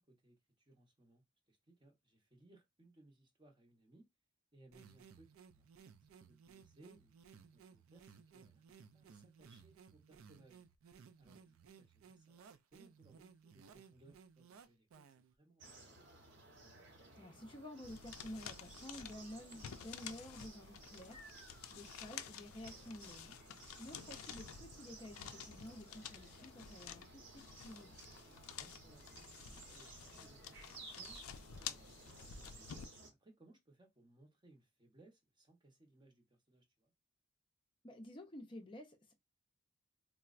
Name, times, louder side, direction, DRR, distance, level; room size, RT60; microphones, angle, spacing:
voice 1, 0.0-4.1 4.5-5.9 6.3-7.2 7.5-10.6 11.2-12.4 12.7-16.2 21.4-21.7 28.4-32.7 33.2-36.9, right 2 dB, 20° right, 0.7 m, -66 dB
sound 1, 4.7-15.3, right 6 dB, 75° right, 0.4 m, -60 dB
sound 2, 15.6-33.1, right 2 dB, 55° right, 0.9 m, -57 dB
voice 2, 17.2-28.0 37.8-39.1, left 1 dB, 25° left, 0.5 m, -52 dB
sound 3, 17.8-32.9, left 8 dB, 85° left, 0.4 m, -51 dB
4.3 x 2.0 x 2.4 m
head